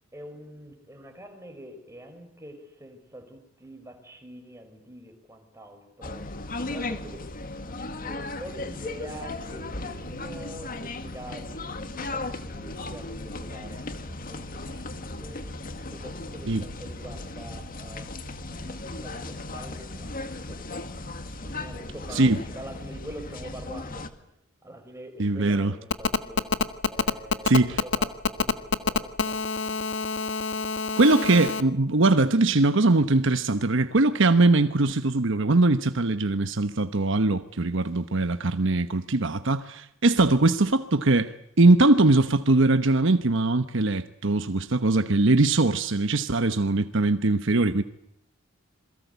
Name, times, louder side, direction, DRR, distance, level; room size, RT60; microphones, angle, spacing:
voice 1, 0.1-6.3 6.6-7.3 7.9-15.4 15.9-18.1 18.5-21.0 21.4-24.3 24.6-26.6 26.9-29.9, right 1 dB, 15° right, 5.5 m, -45 dB
sound 1, 6.0-24.1, left 2 dB, 45° left, 2.1 m, -36 dB
voice 2, 25.2-25.7 27.4-27.8 31.0-47.8, right 2 dB, 65° right, 1.1 m, -21 dB
Telephone, 25.9-31.6, left 4 dB, 65° left, 1.5 m, -26 dB
27.5 x 22.5 x 8.2 m
head